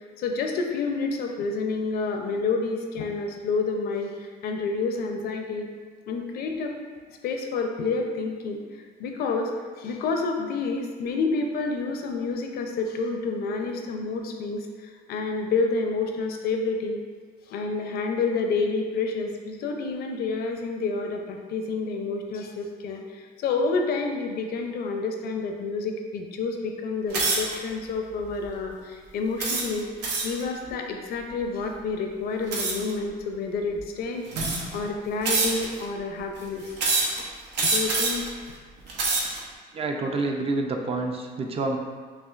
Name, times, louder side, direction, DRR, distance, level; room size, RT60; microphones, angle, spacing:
voice 1, 0.2-4.1 4.4-5.7 6.1-6.8 7.2-8.6 9.0-9.5 9.8-17.0 17.5-29.9 30.2-36.7 37.1-37.3 37.6-38.2, left 4 dB, 65° left, 3 dB, 0.5 m, -29 dB
sound 1, 27.1-27.6 28.2-28.5 29.4-30.4 32.5-32.9 33.7-33.8 34.3-34.8 35.2-35.8 36.8-37.2 37.5-38.3 38.8-39.4, right 3 dB, 85° right, 0.8 m, -25 dB
voice 2, 39.7-41.8, right 3 dB, 35° right, 2 dB, 0.4 m, -28 dB
5.6 x 2.4 x 2.4 m, 1.5 s
cardioid pair, 110°, 17 cm